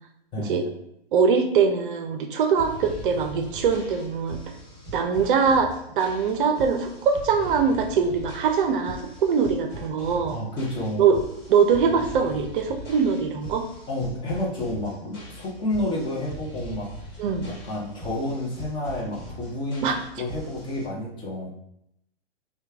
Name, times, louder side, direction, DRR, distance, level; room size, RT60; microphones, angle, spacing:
voice 1, 0.4-0.7 1.1-4.4 4.9-10.4 11.0-11.2 11.5-13.6 17.2-17.5 19.8-20.0, right 6 dB, 55° right, 5 dB, 0.5 m, -22 dB
sound 1, 2.6-20.9, equal, 30° left, 1.4 m, -41 dB
voice 2, 10.3-11.0 13.9-17.0 17.4-21.5, left 1 dB, 15° left, -3 dB, 0.6 m, -30 dB
3.1 x 2.2 x 3.4 m, 0.77 s
hypercardioid pair, 130°, 31 cm